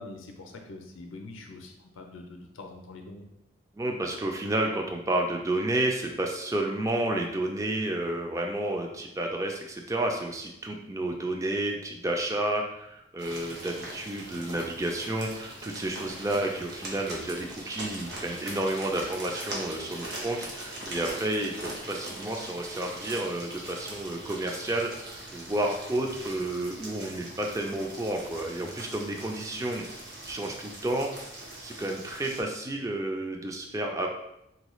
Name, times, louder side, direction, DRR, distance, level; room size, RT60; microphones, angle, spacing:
voice 1, 0.0-3.3, left 2 dB, 80° left, 2 dB, 0.5 m, -44 dB
voice 2, 3.7-29.8 30.3-31.1 31.6-34.1, right 1 dB, 15° right, 2 dB, 0.3 m, -31 dB
sound 1, 13.2-32.4, right 1 dB, 55° right, 0.9 m, -41 dB
3.9 x 2.3 x 3.0 m, 0.83 s
head